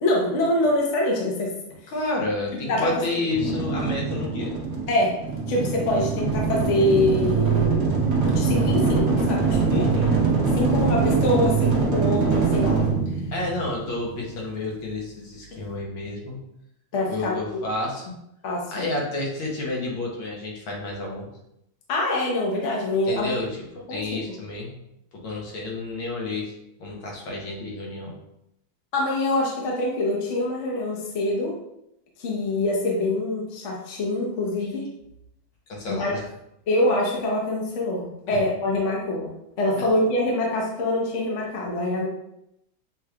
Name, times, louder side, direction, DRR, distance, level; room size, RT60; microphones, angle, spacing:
voice 1, 0.0-1.5 2.7-3.2 4.9-5.1 5.5-7.8 8.3-9.9 10.5-12.8 16.9-17.3 18.4-18.9 21.9-23.3 23.9-24.2 28.9-31.5 32.2-34.8 35.9-36.2 36.7-39.3 39.6-42.1, left 1 dB, 45° left, -2 dB, 1.0 m, -24 dB
voice 2, 1.9-4.5 9.7-10.2 13.3-16.4 17.1-18.2 18.7-21.3 23.1-23.5 23.9-24.7 25.1-26.5 26.8-28.1 35.7-36.2 38.3-38.4 39.7-39.9, left 2 dB, 75° left, -2 dB, 1.8 m, -30 dB
sound 1, 3.3-14.3, right 4 dB, 50° right, 1.3 m, -23 dB
6.6 x 3.1 x 2.4 m, 0.80 s
omnidirectional pair, 2.2 m